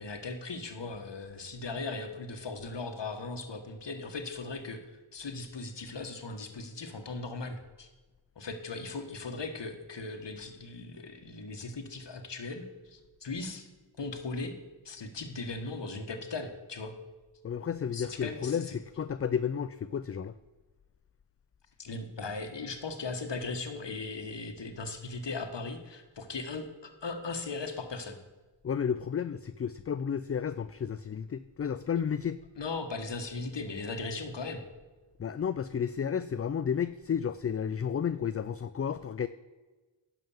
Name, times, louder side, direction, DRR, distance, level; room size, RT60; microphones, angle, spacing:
voice 1, 0.0-7.9 8.3-13.7 14.0-14.5 14.8-16.9 17.9-18.6 21.8-28.2 32.6-34.6, left 3 dB, 60° left, 7 dB, 1.5 m, -38 dB
voice 2, 17.4-20.3 28.6-32.4 35.2-39.3, left 7 dB, 35° left, 13 dB, 0.4 m, -32 dB
11.0 x 5.6 x 7.2 m, 1.3 s
cardioid pair, 40°, 47 cm